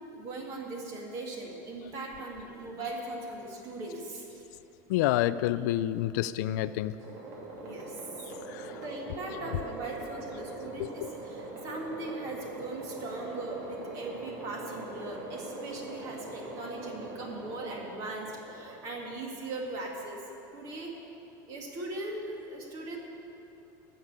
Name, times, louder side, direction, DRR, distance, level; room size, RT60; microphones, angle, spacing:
voice 1, 0.1-4.4 7.6-8.0 8.6-20.2 20.5-20.9 21.5-23.0, right 2 dB, 35° right, 0 dB, 2.0 m, -39 dB
voice 2, 4.9-6.9 8.5-8.7 10.8-11.1, left 13 dB, 70° left, 14 dB, 0.3 m, -28 dB
sound 1, 7.0-19.6, right 2 dB, 50° right, 2.9 m, -42 dB
13.0 x 6.7 x 9.6 m, 2.8 s
cardioid pair, 180°, 10 cm